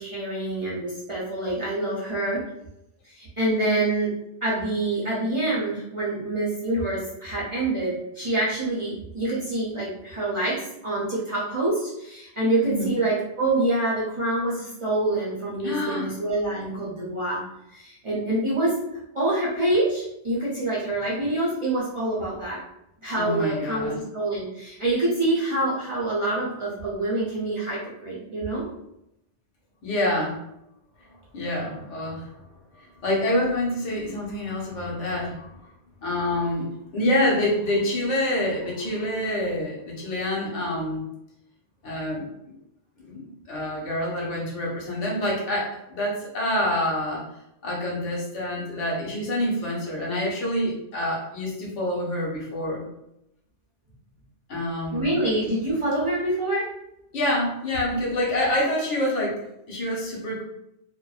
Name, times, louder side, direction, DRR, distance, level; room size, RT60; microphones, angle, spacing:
voice 1, 0.0-2.4 3.0-4.1 4.4-17.4 17.7-18.8 19.1-22.6 23.0-28.6 54.9-56.7, right 2 dB, 45° right, -7 dB, 0.4 m, -26 dB
voice 2, 15.6-16.1 23.2-24.0 29.8-30.4 31.3-32.3 32.7-35.6 36.0-36.7 36.9-41.0 41.8-42.2 43.0-47.2 47.6-52.8 54.5-55.1 57.1-59.4 59.7-60.4, left 1 dB, 85° left, -3 dB, 1.1 m, -27 dB
2.5 x 2.1 x 2.3 m, 0.82 s
omnidirectional pair, 1.2 m